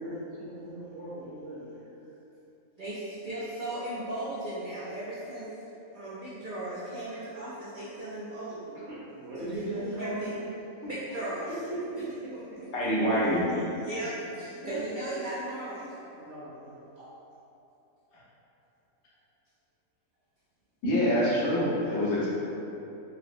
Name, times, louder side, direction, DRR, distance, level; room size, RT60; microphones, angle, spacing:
voice 1, 0.0-1.9 9.1-10.3 10.8-10.9 11.7-12.0 14.6-15.1 16.1-17.1, right 1 dB, 55° right, -10 dB, 0.9 m, -38 dB
voice 2, 2.8-5.5 5.9-8.8 9.4-10.4 10.9-11.5 12.3-12.4 12.8-13.4 13.8-15.9, right 1 dB, 90° right, -10 dB, 0.4 m, -37 dB
voice 3, 12.7-13.4 20.8-22.3, equal, 85° left, -8 dB, 1.3 m, -25 dB
4.0 x 2.0 x 2.5 m, 2.8 s
omnidirectional pair, 1.5 m